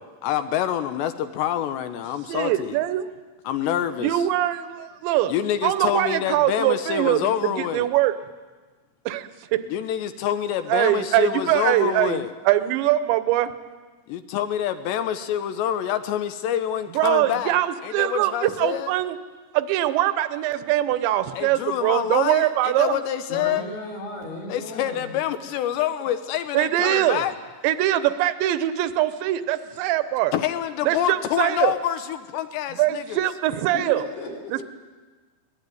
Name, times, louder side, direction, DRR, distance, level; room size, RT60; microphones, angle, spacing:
voice 1, 0.2-2.8 3.5-4.3 5.3-7.9 9.7-12.3 14.1-17.5 17.8-18.9 21.3-23.6 24.5-27.3 30.3-33.2, left 10 dB, 75° left, 10 dB, 3.0 m, -26 dB
voice 2, 2.3-3.1 4.0-5.3 5.6-8.1 9.1-9.6 10.7-12.2 12.4-13.5 16.9-19.2 19.5-23.0 26.5-27.2 27.6-30.3 30.9-31.7 32.8-34.0 34.5-34.6, right 14 dB, 80° right, 13 dB, 3.1 m, -22 dB
voice 3, 23.3-25.2 33.7-34.5, left 2 dB, 60° left, -1 dB, 6.1 m, -35 dB
23.5 x 19.0 x 9.3 m, 1.3 s
omnidirectional pair, 5.3 m